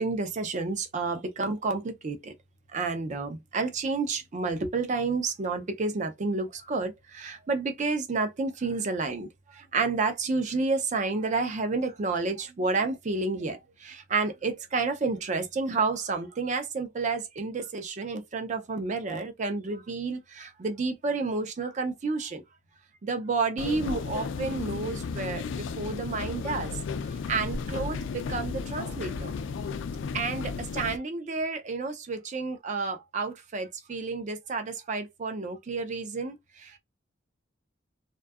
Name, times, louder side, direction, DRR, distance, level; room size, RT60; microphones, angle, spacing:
voice 1, 0.0-2.3 2.7-22.4 23.0-26.7 27.0-29.3 30.1-36.8, right 3 dB, 40° right, 0.4 m, -30 dB
sound 1, 23.6-31.0, left 5 dB, 75° left, 0.3 m, -34 dB
2.6 x 2.2 x 2.3 m
head